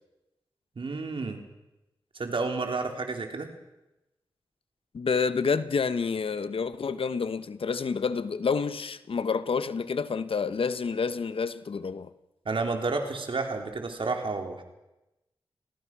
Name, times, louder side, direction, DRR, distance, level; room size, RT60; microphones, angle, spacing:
voice 1, 0.8-1.4 2.1-3.5 12.5-14.6, right 3 dB, 65° right, 3.9 m, -31 dB
voice 2, 4.9-12.1, left 5 dB, 75° left, 1.1 m, -28 dB
28.5 x 20.0 x 6.2 m
cardioid pair, 50°, 10 cm